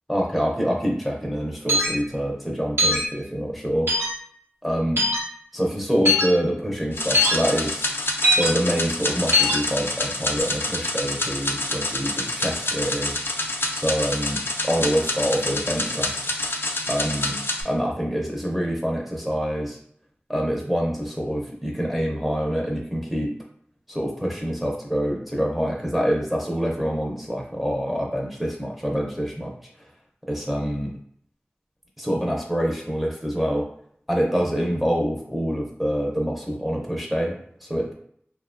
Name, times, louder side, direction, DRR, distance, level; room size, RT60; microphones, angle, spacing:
voice 1, 0.1-3.9 4.6-5.0 5.5-7.9 8.4-13.2 13.7-14.4 14.7-16.3 16.9-17.4 17.6-19.8 20.3-23.3 23.9-29.5 30.3-30.9 32.0-33.7 34.1-37.4 37.6-37.9, equal, ahead, -1 dB, 0.6 m, -26 dB
sound 1, 1.7-1.9 2.8-3.0 3.9-4.1 5.0-5.2 6.0-6.2 7.1-7.3 8.2-8.5 9.3-9.6, left 1 dB, 70° right, 0.8 m, -19 dB
sound 2, 6.9-17.6, left 2 dB, 65° left, 0.4 m, -27 dB
2.7 x 2.2 x 2.4 m, 0.64 s
wide cardioid pair, 50°, 4 cm